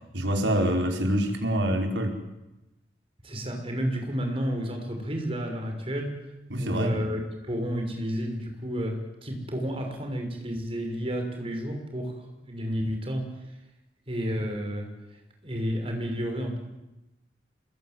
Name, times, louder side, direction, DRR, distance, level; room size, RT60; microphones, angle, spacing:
voice 1, 0.1-2.2 6.5-7.1, equal, 85° right, 3 dB, 5.1 m, -26 dB
voice 2, 3.2-6.2 6.6-13.4 14.1-14.9 15.4-16.6, equal, 30° right, 3 dB, 6.2 m, -31 dB
27.0 x 21.5 x 9.4 m, 0.96 s
head